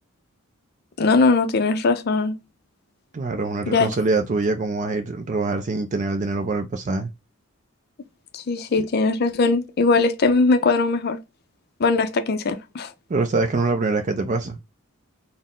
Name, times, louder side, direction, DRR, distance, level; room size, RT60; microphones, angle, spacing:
voice 1, 1.0-2.3 3.7-3.9 8.3-11.2 11.8-12.9, left 3 dB, 50° left, 0.5 m, -20 dB
voice 2, 3.1-7.1 13.1-14.6, right 3 dB, 35° right, 0.4 m, -24 dB
4.1 x 2.1 x 3.6 m
head